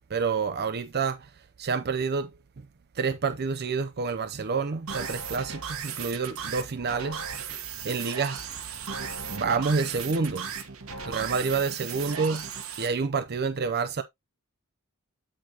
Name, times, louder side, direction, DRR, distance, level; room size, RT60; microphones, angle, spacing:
voice 1, 0.1-2.3 2.9-7.2 7.8-8.4 9.3-10.5 11.0-12.5 12.8-14.0, right 5 dB, 50° right, 0.6 m, -28 dB
sound 1, 4.9-12.9, right 6 dB, 70° right, 1.3 m, -36 dB
8.0 x 6.2 x 2.9 m
head